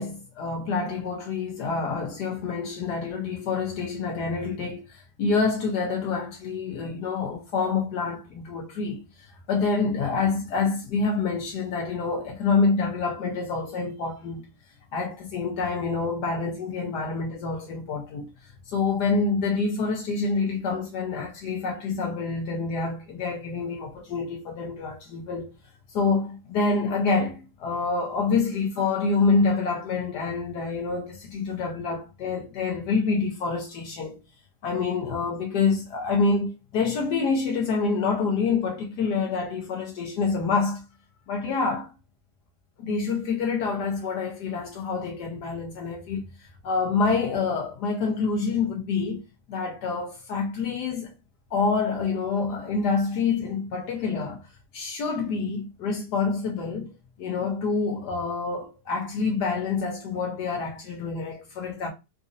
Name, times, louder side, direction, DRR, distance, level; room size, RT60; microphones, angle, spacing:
voice 1, 0.0-9.0 9.5-14.5 14.9-18.3 18.7-25.5 25.9-34.2 34.6-40.8 41.3-41.9 42.8-46.3 46.6-49.2 49.5-51.1 51.5-54.4 54.7-56.9 57.2-61.9, left 4 dB, 75° left, 1.3 m, -27 dB
3.9 x 2.6 x 2.6 m
omnidirectional pair, 1.8 m